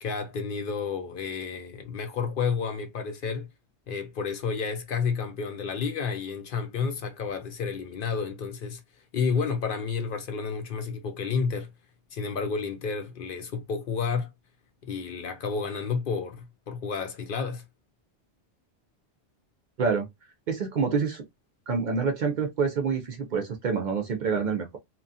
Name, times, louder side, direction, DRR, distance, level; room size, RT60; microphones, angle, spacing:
voice 1, 0.0-3.5 3.9-8.8 9.1-11.7 12.1-14.3 14.8-17.6, left 5 dB, 60° left, 0.7 m, -31 dB
voice 2, 20.5-21.2 21.7-24.8, right 5 dB, 55° right, 0.6 m, -27 dB
2.9 x 2.3 x 2.5 m
omnidirectional pair, 1.1 m